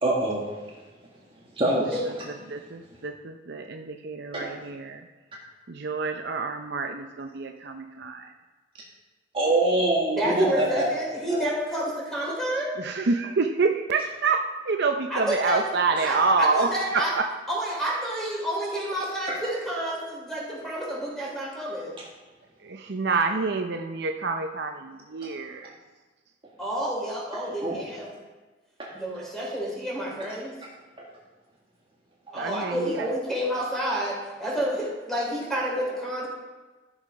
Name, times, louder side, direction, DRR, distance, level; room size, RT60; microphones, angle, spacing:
voice 1, 0.0-0.4 1.6-2.0 4.3-4.5 9.3-10.8 11.3-11.4 19.3-19.4 27.6-27.8 28.8-28.9 32.4-32.5, right 2 dB, 30° right, -4 dB, 1.8 m, -24 dB
voice 2, 2.5-5.1 5.7-8.3 12.8-17.3 22.6-25.7 32.3-33.1, right 4 dB, 60° right, 5 dB, 0.6 m, -27 dB
voice 3, 10.2-12.7 15.1-15.7 16.0-17.1 17.5-21.9 26.6-28.1 28.9-30.5 32.3-36.3, right 1 dB, ahead, -5 dB, 3.9 m, -29 dB
13.5 x 6.5 x 5.1 m, 1.3 s
head